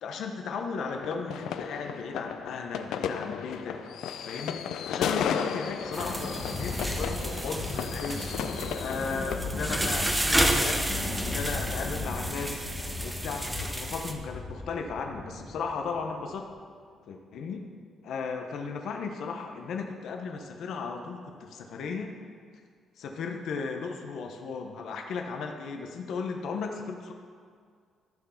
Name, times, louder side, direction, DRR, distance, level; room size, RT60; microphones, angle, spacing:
voice 1, 0.0-3.8 4.2-8.4 8.7-10.9 11.2-12.7 13.0-16.5 17.1-17.6 18.0-22.1 23.0-27.1, left 5 dB, 60° left, 3 dB, 0.9 m, -35 dB
sound 1, 0.9-9.4, left 8 dB, 85° left, 0.5 m, -34 dB
Thunder, 5.8-16.1, left 2 dB, 35° left, 1.3 m, -36 dB
sound 2, 5.9-14.1, right 1 dB, 10° right, 0.6 m, -31 dB
13.5 x 4.7 x 5.7 m, 2.1 s
cardioid pair, 175°, 0 cm